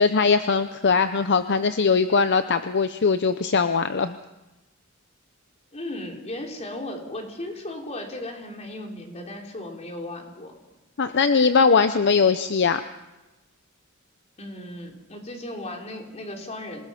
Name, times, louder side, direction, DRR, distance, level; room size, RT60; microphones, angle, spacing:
voice 1, 0.0-4.1 11.0-12.8, left 5 dB, 55° left, 10 dB, 0.7 m, -20 dB
voice 2, 5.7-10.5 14.4-16.8, left 1 dB, 35° left, 1 dB, 3.6 m, -36 dB
26.5 x 18.5 x 5.8 m, 1.0 s
head